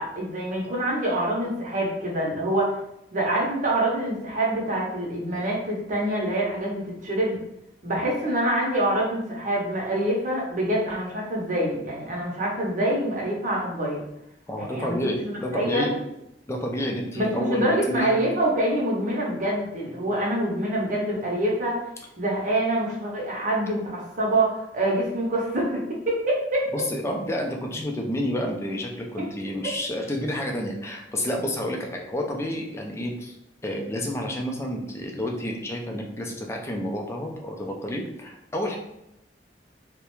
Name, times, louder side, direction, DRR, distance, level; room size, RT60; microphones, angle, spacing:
voice 1, 0.0-2.8 3.1-7.4 7.8-14.0 14.6-15.9 17.1-21.8 22.2-26.7 29.2-29.3, right 1 dB, 45° right, -2 dB, 0.7 m, -26 dB
voice 2, 14.5-15.9 16.5-18.2 26.7-33.4 33.6-38.8, equal, 15° left, 1 dB, 0.4 m, -30 dB
2.3 x 2.1 x 3.0 m, 0.83 s
head